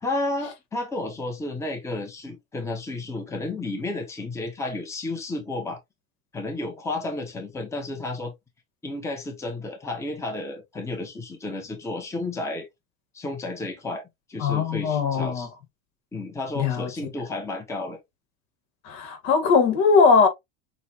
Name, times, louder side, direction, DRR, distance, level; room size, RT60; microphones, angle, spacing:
voice 1, 0.0-5.8 6.3-8.3 8.8-12.7 13.1-14.0 14.3-15.5 16.1-18.0, left 2 dB, 10° left, 0.9 m, -32 dB
voice 2, 14.4-15.5 16.5-16.9 18.8-20.3, left 5 dB, 65° left, 1.5 m, -20 dB
6.3 x 2.3 x 2.8 m
cardioid pair, 145°, 29 cm